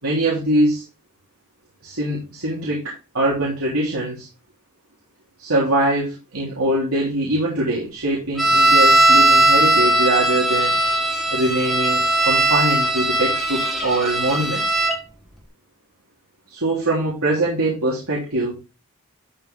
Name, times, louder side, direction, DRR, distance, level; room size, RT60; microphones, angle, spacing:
voice 1, 0.0-0.8 1.8-4.3 5.4-10.8 11.3-14.8 16.5-18.5, right 1 dB, 85° right, -5 dB, 3.3 m, -22 dB
sound 1, 8.4-15.0, right 1 dB, ahead, 1.5 m, -18 dB
12.5 x 4.8 x 3.8 m, 0.29 s
head